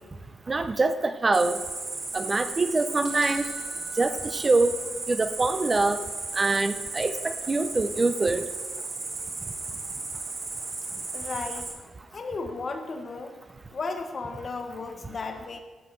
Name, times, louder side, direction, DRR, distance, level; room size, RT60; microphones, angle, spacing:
voice 1, 0.5-1.6 2.1-3.5 3.9-4.7 5.1-6.0 6.3-8.5, right 3 dB, 25° right, 9 dB, 0.6 m, -24 dB
Cricket, 1.3-11.7, right 3 dB, 50° right, 3.9 m, -35 dB
sound 1, 3.0-5.0, right 3 dB, 70° right, 2.4 m, -43 dB
voice 2, 11.1-11.7 12.1-13.4 13.7-15.6, left 3 dB, 40° left, 5 dB, 1.4 m, -34 dB
13.5 x 4.9 x 7.6 m, 1.4 s
cardioid pair, 120°, 0 cm